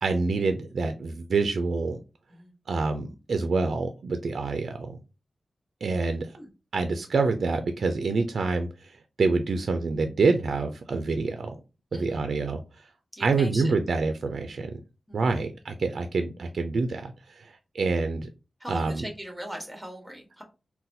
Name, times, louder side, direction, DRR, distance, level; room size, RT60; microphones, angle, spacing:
voice 1, 0.0-2.0 2.7-4.9 5.8-6.3 6.7-11.6 11.9-12.6 13.2-14.7 15.1-18.3 18.7-19.0, right 4 dB, 70° right, 7 dB, 0.4 m, -27 dB
voice 2, 13.2-13.7 15.1-15.5 18.6-20.4, right 1 dB, 5° right, 2 dB, 1.1 m, -39 dB
4.0 x 2.2 x 2.5 m, 0.29 s
wide cardioid pair, 105°, 0 cm